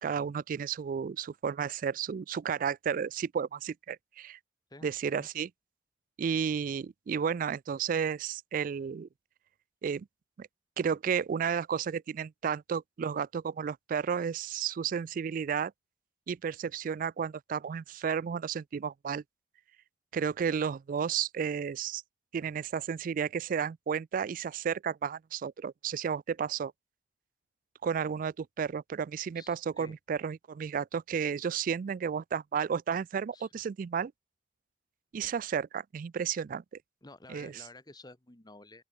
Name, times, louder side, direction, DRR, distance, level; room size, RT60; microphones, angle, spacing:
voice 1, 0.0-4.4 4.8-5.5 6.2-9.1 9.8-10.1 10.4-10.5 10.8-15.7 16.3-19.2 20.1-22.0 22.3-26.7 27.8-34.1 35.1-36.6 37.3-37.5, right 7 dB, 50° right, 0.3 m, -32 dB
voice 2, 4.7-5.3 29.3-30.0 33.3-33.5 37.0-38.8, left 2 dB, 25° left, 1.6 m, -52 dB
open air
head